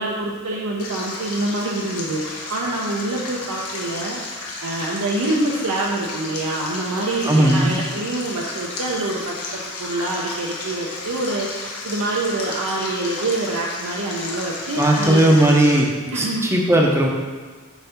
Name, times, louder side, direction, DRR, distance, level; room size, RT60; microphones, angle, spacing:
voice 1, 0.0-9.3 9.8-15.3 16.1-16.5, right 2 dB, 75° right, -3 dB, 0.6 m, -26 dB
Stream, 0.8-15.8, left 3 dB, 75° left, 1.1 m, -33 dB
voice 2, 7.3-7.8 14.8-15.9 16.1-17.1, right 1 dB, 10° right, 0 dB, 0.7 m, -16 dB
7.0 x 2.7 x 5.7 m, 1.4 s
head